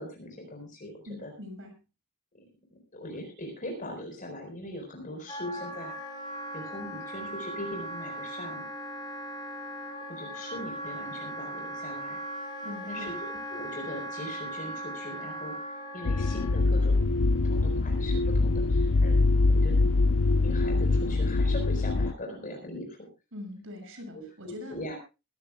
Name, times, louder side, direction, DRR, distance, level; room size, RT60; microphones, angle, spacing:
voice 1, 0.0-1.3 2.7-5.9 6.5-8.7 10.1-12.2 12.9-17.0 17.4-23.0 24.1-25.0, left 1 dB, 35° left, 2 dB, 4.4 m, -41 dB
voice 2, 1.0-1.8 12.6-13.2 23.3-24.8, left 1 dB, 60° right, 6 dB, 6.5 m, -42 dB
Wind instrument woodwind instrument, 5.3-16.6, right 1 dB, 20° left, 5.5 m, -38 dB
sound 1, 16.0-22.1, left 3 dB, 65° left, 0.6 m, -24 dB
23.0 x 14.0 x 2.3 m, 0.29 s
head